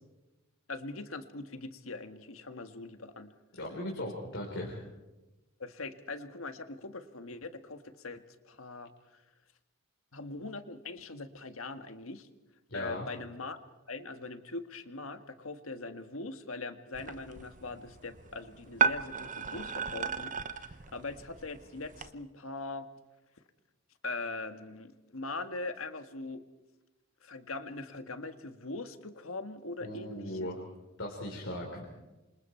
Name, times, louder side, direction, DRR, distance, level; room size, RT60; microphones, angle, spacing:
voice 1, 0.7-3.3 5.6-9.2 10.1-12.3 12.7-13.6 13.9-22.9 24.0-26.4 27.2-30.5, left 3 dB, 80° left, 9 dB, 1.7 m, -41 dB
voice 2, 3.6-4.8 12.7-13.1 29.8-30.6 31.0-31.9, left 1 dB, 65° left, -1 dB, 4.0 m, -38 dB
sound 1, 16.9-22.1, right 6 dB, 40° right, 0.9 m, -35 dB
28.0 x 26.0 x 4.5 m, 1.1 s
head